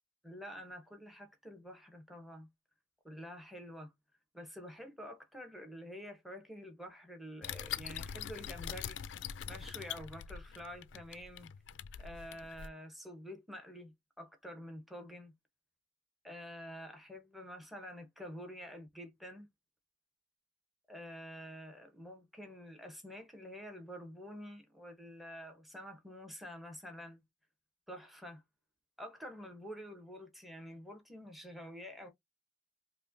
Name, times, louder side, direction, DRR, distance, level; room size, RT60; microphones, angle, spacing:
voice 1, 0.2-2.5 3.0-3.9 4.3-9.2 9.5-11.5 12.0-15.3 16.2-19.5 20.9-27.2 27.9-28.4 29.0-32.1, equal, ahead, 0.9 m, -48 dB
sound 1, 7.4-12.7, left 9 dB, 80° left, 0.3 m, -43 dB
5.1 x 2.2 x 2.6 m
head